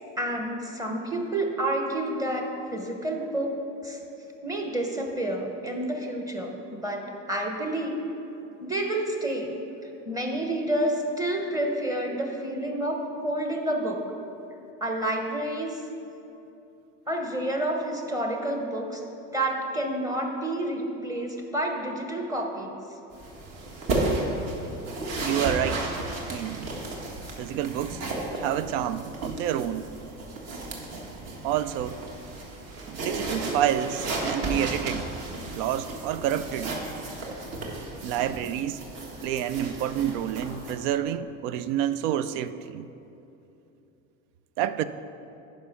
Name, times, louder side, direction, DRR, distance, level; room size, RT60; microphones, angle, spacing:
voice 1, 0.2-3.6 3.8-4.0 4.4-8.0 8.6-9.5 9.8-14.0 14.8-15.8 17.1-19.0 19.3-22.7, right 1 dB, 10° right, 2 dB, 0.9 m, -29 dB
sound 1, 23.1-40.7, right 2 dB, 50° right, 1.6 m, -34 dB
voice 2, 25.2-25.9 26.3-26.7 27.4-28.0 28.4-29.9 31.4-32.0 32.9-35.1 35.5-36.7 38.0-38.8 39.2-42.9 44.6-44.8, right 10 dB, 80° right, 14 dB, 0.5 m, -28 dB
10.5 x 5.3 x 5.7 m, 2.9 s
cardioid pair, 150°, 33 cm